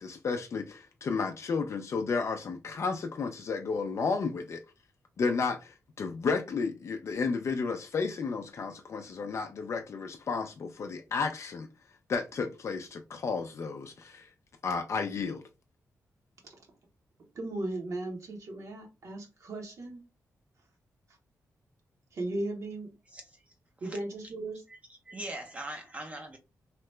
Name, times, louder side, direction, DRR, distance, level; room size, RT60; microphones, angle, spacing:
voice 1, 0.0-4.6 5.2-11.7 12.1-14.3 14.6-15.4, left 4 dB, 50° left, 0.4 m, -32 dB
voice 2, 17.3-20.0 22.1-22.9 23.8-24.6, right 2 dB, 60° right, 0.9 m, -36 dB
voice 3, 24.7-26.4, right 1 dB, 20° right, 0.5 m, -41 dB
2.8 x 2.1 x 3.1 m
wide cardioid pair, 125°, 6 cm